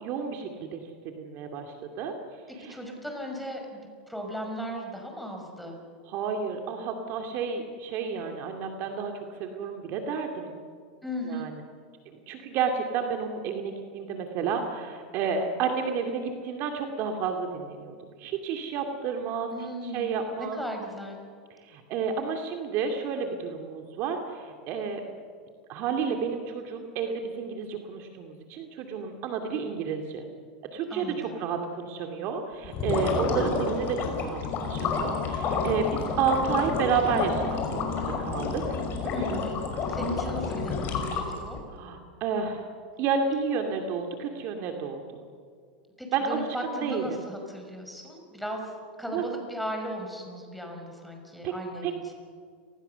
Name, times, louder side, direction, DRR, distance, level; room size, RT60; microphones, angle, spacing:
voice 1, 0.0-2.1 2.6-2.8 6.1-9.1 9.4-10.5 11.3-11.5 12.3-19.5 19.8-20.6 21.6-25.0 25.7-30.3 30.7-38.8 39.2-39.3 41.7-42.7 43.0-45.0 46.1-47.2 49.1-49.2 51.4-51.5 51.8-51.9, right 6 dB, 45° right, 4 dB, 2.4 m, -31 dB
voice 2, 2.5-3.8 4.1-5.8 11.0-11.5 19.5-20.1 20.4-21.2 30.9-31.5 39.1-41.6 46.0-48.7 49.0-52.1, equal, ahead, 2 dB, 5.6 m, -36 dB
sound 1, 32.6-41.6, left 4 dB, 40° left, 5.4 m, -29 dB
29.5 x 20.0 x 6.9 m, 2.1 s
supercardioid pair, 130°, 5 cm